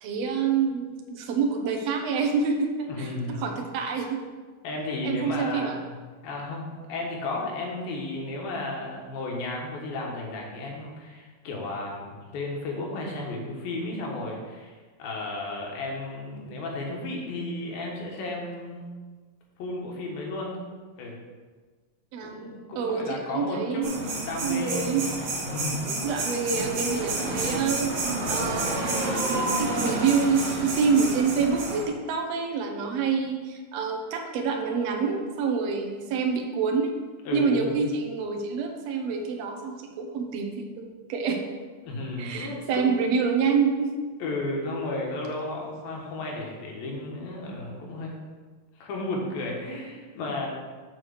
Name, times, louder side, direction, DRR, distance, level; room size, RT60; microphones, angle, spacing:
voice 1, 0.0-4.2 5.0-5.7 22.1-23.9 24.4-25.1 26.0-27.9 28.3-36.9 37.3-41.4 42.2-43.9, right 5 dB, 75° right, 2 dB, 1.5 m, -27 dB
voice 2, 2.9-3.6 4.6-5.9 6.2-18.9 19.6-20.6 21.0-21.2 22.2-25.1 25.4-25.8 37.2-37.8 41.8-42.9 44.2-48.2 48.8-50.5, left 2 dB, 90° left, -1 dB, 3.3 m, -33 dB
sound 1, 23.8-31.8, right 2 dB, 55° right, 2.1 m, -29 dB
7.5 x 4.8 x 6.5 m, 1.4 s
omnidirectional pair, 4.1 m